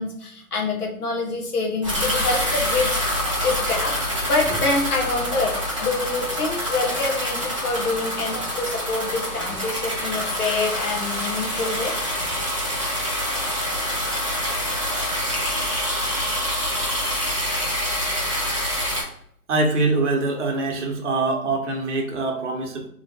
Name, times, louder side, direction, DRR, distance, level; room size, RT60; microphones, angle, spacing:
voice 1, 0.0-3.9 4.3-12.3, left 3 dB, 80° left, 1 dB, 1.2 m, -26 dB
sound 1, 1.8-19.0, equal, 25° right, 0.4 m, -26 dB
voice 2, 19.5-22.9, right 3 dB, 50° right, 1 dB, 0.9 m, -24 dB
3.0 x 2.4 x 4.3 m, 0.66 s
hypercardioid pair, 150°, 45 cm